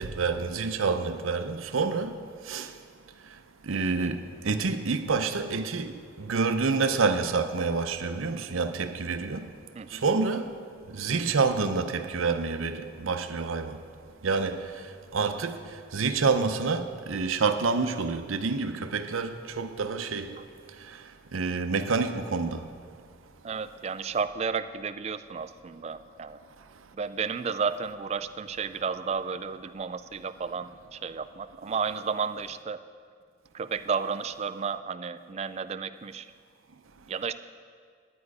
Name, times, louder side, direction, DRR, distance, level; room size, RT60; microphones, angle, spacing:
voice 1, 0.0-2.1 2.5-2.7 3.7-5.9 6.2-9.5 9.9-10.5 10.9-13.8 14.2-14.6 15.1-15.6 15.9-20.3 21.3-22.6, right 4 dB, 90° right, 0.7 m, -28 dB
voice 2, 23.4-26.4 26.9-32.8 33.5-36.3 37.1-37.3, right 5 dB, 30° right, 0.3 m, -32 dB
11.5 x 9.3 x 4.8 m
head